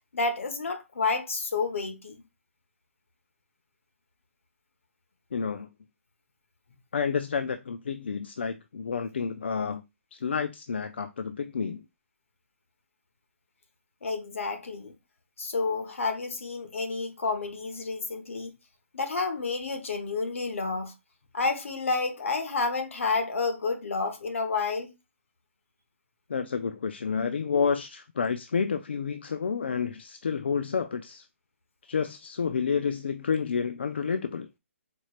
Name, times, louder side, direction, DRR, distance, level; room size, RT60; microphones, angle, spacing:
voice 1, 0.1-2.2 14.0-14.9 15.4-18.5 18.9-20.9 21.3-24.9, left 4 dB, 65° left, 1.0 m, -30 dB
voice 2, 5.3-5.7 6.9-9.8 10.1-11.8 26.3-31.2 31.9-34.5, left 6 dB, 50° left, 0.3 m, -29 dB
4.3 x 3.1 x 2.4 m
hypercardioid pair, 180°, 7 cm